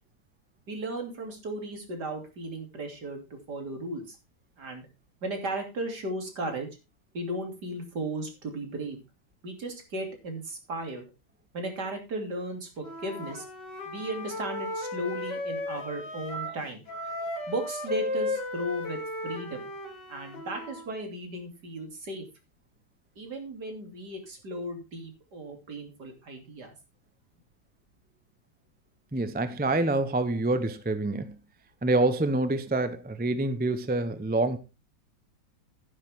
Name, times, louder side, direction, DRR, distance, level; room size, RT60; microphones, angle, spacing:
voice 1, 0.7-4.2 4.6-4.9 5.2-6.7 7.1-9.0 9.4-11.1 11.5-13.5 13.9-19.7 20.1-22.2 23.2-26.7, right 1 dB, 70° right, 3.5 m, -36 dB
Wind instrument woodwind instrument, 12.8-16.6 16.9-20.9, left 1 dB, 80° left, 2.7 m, -35 dB
voice 2, 29.1-31.4 31.8-34.6, right 2 dB, 10° right, 0.4 m, -26 dB
12.0 x 9.9 x 3.6 m
omnidirectional pair, 1.9 m